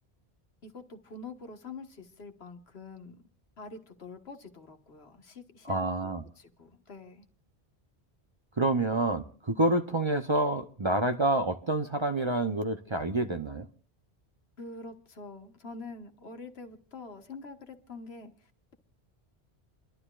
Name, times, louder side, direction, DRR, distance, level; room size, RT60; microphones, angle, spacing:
voice 1, 0.6-3.2 3.6-7.3 14.6-18.7, left 3 dB, 70° left, 1.6 m, -46 dB
voice 2, 5.7-6.2 8.6-13.7, right 2 dB, 30° right, 0.6 m, -28 dB
29.0 x 12.0 x 2.4 m
omnidirectional pair, 1.1 m